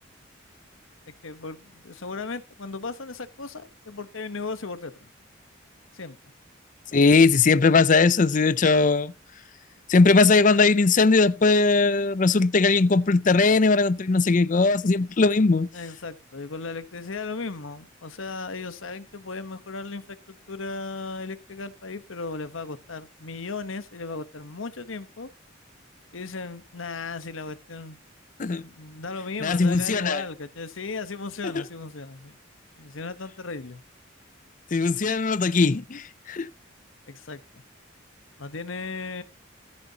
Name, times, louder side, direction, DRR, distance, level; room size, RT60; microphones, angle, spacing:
voice 1, 1.2-5.1 5.9-6.2 15.7-25.3 26.1-28.0 28.6-32.4 32.8-33.8 37.1-37.4 38.4-39.2, left 4 dB, 80° left, 1.1 m, -36 dB
voice 2, 6.9-9.1 9.9-15.7 28.4-28.6 29.4-30.2 34.7-36.5, left 4 dB, 40° left, 0.5 m, -19 dB
14.5 x 9.7 x 2.9 m
head